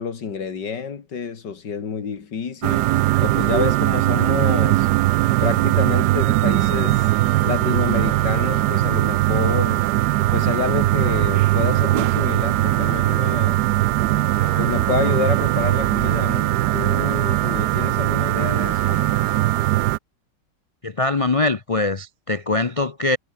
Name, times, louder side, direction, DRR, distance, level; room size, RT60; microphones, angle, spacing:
voice 1, 0.0-2.9 3.2-4.9 5.4-7.1 7.4-9.9 10.3-13.6 14.6-19.1, left 6 dB, 75° left, 2.7 m, -28 dB
sound 1, 2.6-20.0, right 16 dB, 75° right, 1.1 m, -20 dB
voice 2, 20.8-23.2, left 2 dB, 45° left, 0.4 m, -22 dB
omnidirectional pair, 1.9 m